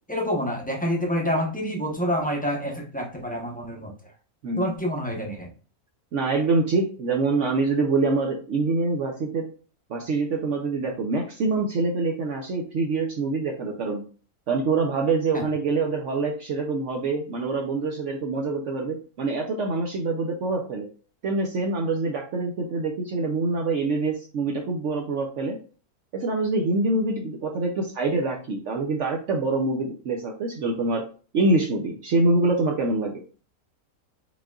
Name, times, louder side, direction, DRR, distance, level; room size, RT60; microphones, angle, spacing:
voice 1, 0.1-3.9 4.5-5.5 15.3-15.5, equal, 10° left, 0 dB, 0.7 m, -27 dB
voice 2, 6.1-9.5 9.9-14.0 14.5-20.9 21.2-25.6 26.1-31.0 31.3-33.2, right 3 dB, 65° right, 1 dB, 1.0 m, -25 dB
5.5 x 3.7 x 2.3 m, 0.38 s
omnidirectional pair, 1.5 m